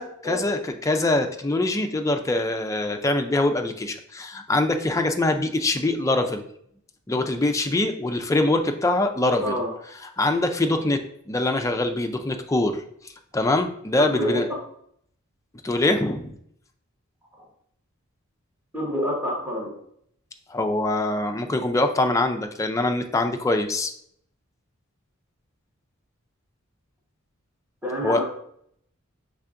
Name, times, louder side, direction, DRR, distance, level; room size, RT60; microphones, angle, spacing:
voice 1, 0.0-6.5 7.1-9.6 10.0-12.8 13.3-14.5 15.6-16.3 20.5-23.9 28.0-28.2, left 2 dB, 15° left, 5 dB, 0.3 m, -23 dB
voice 2, 14.0-14.4 18.7-19.7 27.8-28.3, equal, 10° right, -4 dB, 1.2 m, -27 dB
5.5 x 3.4 x 2.5 m, 0.67 s
head